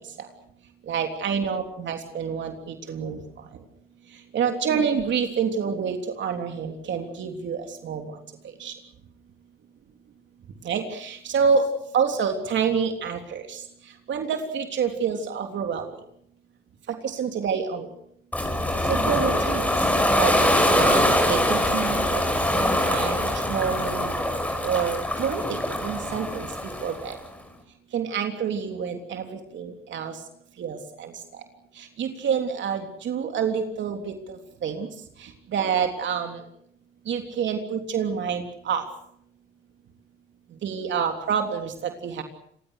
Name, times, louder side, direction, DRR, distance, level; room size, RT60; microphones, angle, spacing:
voice 1, 0.9-3.2 4.3-8.1 8.6-8.7 10.6-11.6 11.9-13.6 14.1-15.8 17.0-17.9 18.9-19.7 20.1-20.3 20.8-22.2 22.5-24.1 24.6-26.5 26.8-27.2 27.9-30.1 30.6-31.1 32.0-34.1 34.6-34.9 35.5-36.4 37.1-38.8 40.6-42.2, right 6 dB, 70° right, 4 dB, 3.4 m, -27 dB
Ocean, 18.3-27.2, left 1 dB, 5° left, 7.1 m, -23 dB
28.0 x 22.5 x 6.6 m, 0.69 s
cardioid pair, 90°, 20 cm